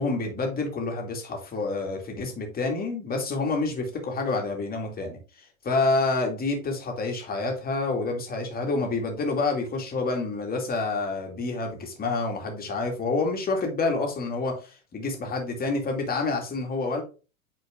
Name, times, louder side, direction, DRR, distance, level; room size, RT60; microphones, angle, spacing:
voice 1, 0.0-17.0, left 3 dB, 20° left, 2 dB, 2.4 m, -28 dB
8.3 x 4.5 x 3.7 m, 0.33 s
hypercardioid pair, 105°, 42 cm